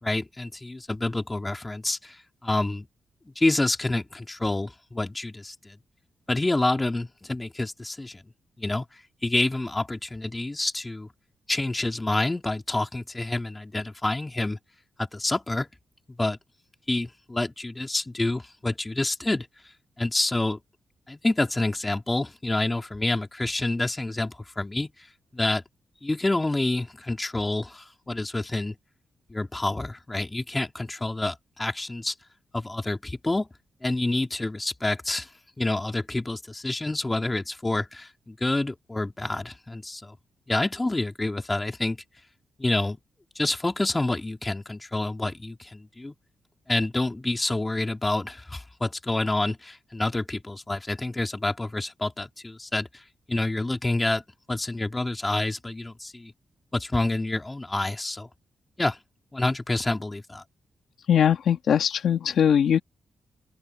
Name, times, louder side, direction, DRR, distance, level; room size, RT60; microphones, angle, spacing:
voice 1, 0.0-2.2 2.4-2.9 3.4-5.8 6.3-8.2 8.6-8.8 9.2-11.1 11.5-14.6 15.0-15.7 16.2-16.4 16.9-19.5 20.0-20.6 21.1-24.9 25.3-25.6 26.0-28.8 29.3-32.1 32.5-33.5 33.8-35.3 35.6-40.1 40.5-42.0 42.6-43.0 43.4-46.1 46.7-52.9 53.3-54.2 54.5-56.3 56.7-58.3 58.8-59.0 59.3-60.4, left 2 dB, 15° left, 3.8 m, -28 dB
voice 2, 61.1-62.8, left 8 dB, 75° left, 1.7 m, -21 dB
open air
cardioid pair, 100°, 0 cm